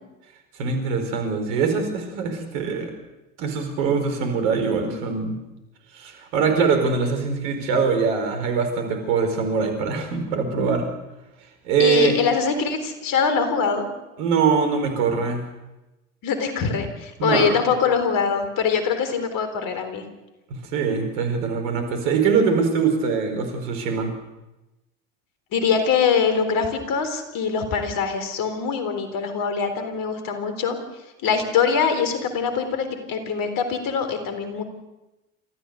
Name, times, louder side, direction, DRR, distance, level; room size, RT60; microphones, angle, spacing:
voice 1, 0.6-2.9 3.4-5.4 5.9-10.9 11.6-12.1 14.2-15.5 17.2-17.5 20.5-24.1, right 5 dB, 75° right, 5 dB, 4.6 m, -23 dB
voice 2, 11.8-13.9 16.2-20.0 25.5-30.8 31.2-34.6, left 6 dB, 60° left, 8 dB, 4.0 m, -23 dB
29.0 x 14.0 x 6.7 m, 1.0 s
hypercardioid pair, 65°, 38 cm